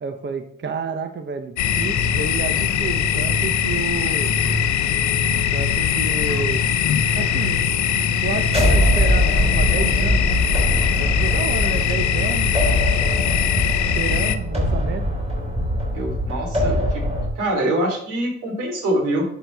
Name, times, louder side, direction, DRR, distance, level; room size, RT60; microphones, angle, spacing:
voice 1, 0.0-4.3 5.5-6.6 7.1-7.6 8.2-10.3 11.0-12.5 13.9-15.1, right 5 dB, 35° right, 6 dB, 0.9 m, -30 dB
sound 1, 1.6-14.4, left 10 dB, 70° left, 0.7 m, -22 dB
sound 2, 1.6-17.3, equal, 20° left, 1.3 m, -31 dB
sound 3, 8.4-17.3, equal, 20° right, 3.8 m, -22 dB
voice 2, 15.9-17.0 17.4-19.2, right 1 dB, 85° right, 0 dB, 3.7 m, -24 dB
11.0 x 6.2 x 3.5 m, 0.67 s
cardioid pair, 90°, 30 cm